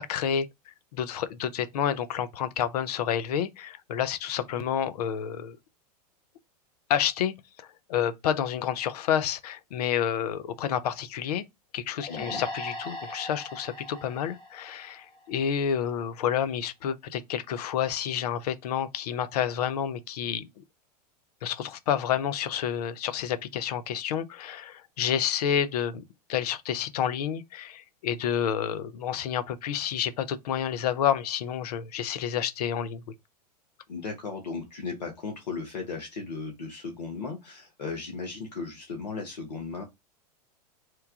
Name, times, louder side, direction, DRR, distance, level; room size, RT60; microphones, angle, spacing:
voice 1, 0.0-5.6 6.9-11.4 11.7-20.5 21.4-26.0 26.3-33.0, left 9 dB, 70° left, 0.5 m, -29 dB
sound 1, 12.0-15.5, left 1 dB, 20° left, 1.1 m, -40 dB
voice 2, 12.1-12.4 33.9-39.8, left 4 dB, 90° left, 0.9 m, -36 dB
3.0 x 2.3 x 3.5 m
hypercardioid pair, 100°, 21 cm